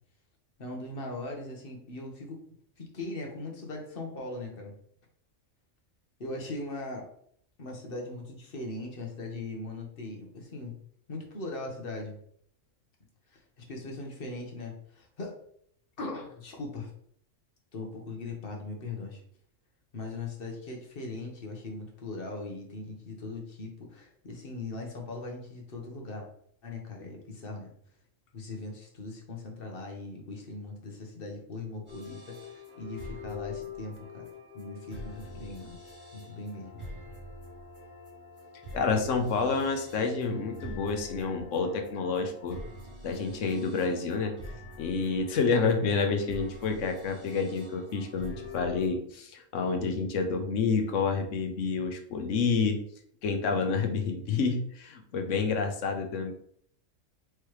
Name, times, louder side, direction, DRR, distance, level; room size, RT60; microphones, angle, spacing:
voice 1, 0.6-2.4 2.8-4.7 6.2-7.1 7.6-10.8 11.1-12.2 13.3-15.4 16.0-16.9 17.7-19.2 19.9-26.3 26.6-27.7 28.3-34.3 34.5-35.8 36.1-36.9, left 2 dB, 45° left, 1 dB, 1.1 m, -39 dB
sound 1, 31.9-48.9, left 2 dB, 10° right, 1.9 m, -45 dB
voice 2, 38.7-42.6 43.0-44.3 44.8-52.8 53.2-56.3, left 4 dB, 70° left, 5 dB, 1.0 m, -29 dB
4.5 x 3.3 x 3.1 m, 0.64 s
omnidirectional pair, 1.4 m